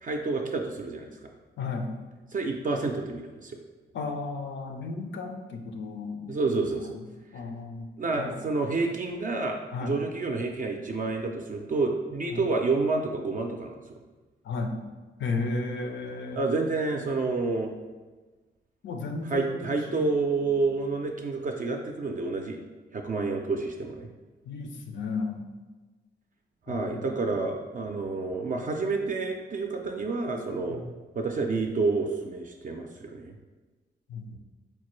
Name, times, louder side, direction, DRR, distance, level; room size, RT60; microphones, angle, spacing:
voice 1, 0.0-1.1 2.3-3.6 6.3-7.0 8.0-13.8 16.3-17.7 19.3-22.6 22.9-24.1 26.7-30.8 31.1-33.4, right 3 dB, 45° right, 2 dB, 0.4 m, -29 dB
voice 2, 1.6-1.9 3.9-6.4 6.7-7.9 8.2-8.4 9.7-10.0 12.3-12.5 14.4-14.8 15.2-16.4 18.8-19.6 19.9-20.1 20.4-20.8 24.4-25.4 26.7-27.5 30.7-30.9 34.1-34.4, left 3 dB, 75° left, 4 dB, 0.5 m, -34 dB
4.4 x 2.2 x 3.0 m, 1.3 s
cardioid pair, 60°, 19 cm